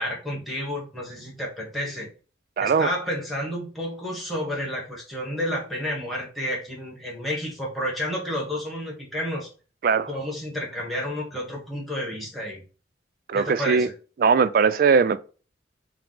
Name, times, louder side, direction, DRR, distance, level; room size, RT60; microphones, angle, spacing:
voice 1, 0.0-2.1 2.6-9.5 10.1-12.6 13.3-13.9, equal, ahead, 1.1 m, -30 dB
voice 2, 2.6-2.9 9.8-10.1 13.3-13.9 14.2-15.2, right 5 dB, 50° right, 0.3 m, -20 dB
4.5 x 2.0 x 3.8 m
head